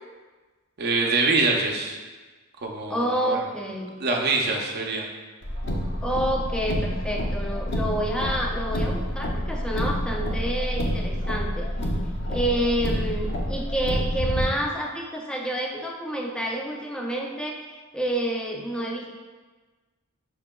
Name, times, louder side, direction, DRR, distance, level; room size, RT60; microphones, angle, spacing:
voice 1, 0.8-2.0 2.6-3.4 4.0-5.0, right 3 dB, 50° right, 1 dB, 0.5 m, -24 dB
voice 2, 2.9-4.0 6.0-11.7 12.3-17.6 17.9-19.1, right 1 dB, 5° left, 0 dB, 0.4 m, -28 dB
Car, 5.4-14.4, equal, 55° left, 0.6 m, -28 dB
5.8 x 2.8 x 2.2 m, 1.3 s
head